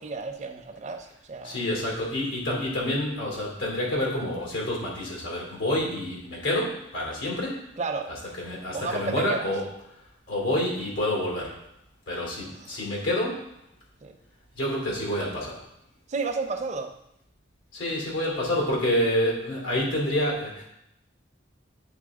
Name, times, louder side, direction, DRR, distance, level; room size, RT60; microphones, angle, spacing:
voice 1, 0.0-1.6 7.8-8.1 8.7-9.5 12.4-12.8 14.0-14.2 16.1-16.9, right 4 dB, 35° right, 5 dB, 0.5 m, -32 dB
voice 2, 1.4-7.7 8.4-9.7 10.3-11.6 12.1-13.5 14.5-15.6 17.7-20.6, left 1 dB, 80° left, -2 dB, 2.7 m, -28 dB
8.5 x 3.9 x 3.6 m, 0.78 s
head